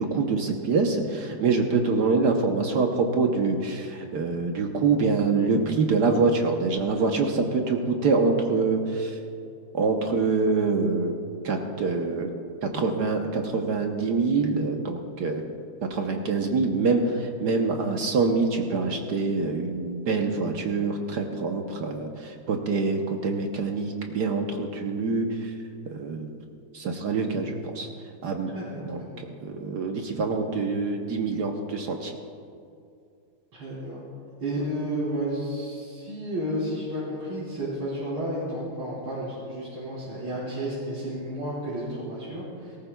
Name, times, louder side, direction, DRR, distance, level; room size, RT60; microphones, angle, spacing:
voice 1, 0.0-9.2 9.7-11.1 11.4-12.3 12.6-15.4 15.9-25.5 25.9-26.4 26.7-27.9 28.2-28.5 28.9-29.0 29.4-32.1, right 4 dB, 60° right, 3 dB, 1.4 m, -25 dB
voice 2, 28.5-29.4 33.5-34.0 34.4-42.8, right 1 dB, 85° right, -9 dB, 4.0 m, -32 dB
18.5 x 17.5 x 2.3 m, 2.5 s
omnidirectional pair, 2.2 m